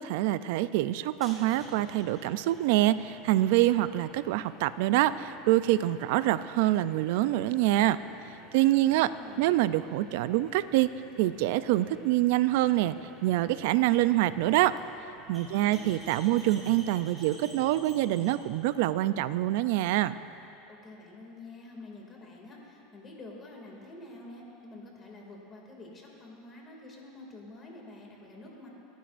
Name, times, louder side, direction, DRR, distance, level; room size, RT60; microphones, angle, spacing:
voice 1, 0.0-8.0 8.5-9.1 9.4-10.9 11.2-12.9 13.2-14.7 15.3-20.1, right 15 dB, 70° right, 14 dB, 0.4 m, -25 dB
sound 1, 1.1-20.5, equal, 10° right, 3.0 m, -51 dB
voice 2, 8.4-9.6 15.5-15.9 20.7-28.7, left 2 dB, 25° left, -1 dB, 2.4 m, -48 dB
27.0 x 10.5 x 2.5 m, 3.0 s
supercardioid pair, 140°, 0 cm